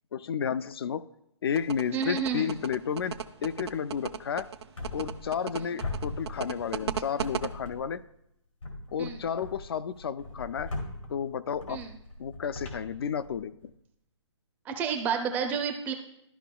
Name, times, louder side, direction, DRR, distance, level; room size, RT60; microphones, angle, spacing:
voice 1, 0.1-1.0 1.4-4.5 4.9-8.0 8.9-10.7 11.1-11.8 12.2-13.5, left 7 dB, 50° left, 14 dB, 0.4 m, -32 dB
sound 1, 1.6-7.5, right 8 dB, 60° right, 0.5 m, -34 dB
voice 2, 1.9-2.5 5.5-5.6 9.0-9.3 11.7-11.9 14.7-15.9, right 6 dB, 10° right, 5 dB, 0.4 m, -30 dB
sound 2, 4.8-5.5 5.8-6.9 7.2-8.1 8.6-13.7, left 2 dB, 85° left, 2.3 m, -40 dB
12.5 x 5.1 x 2.3 m, 0.79 s
hypercardioid pair, 145°, 16 cm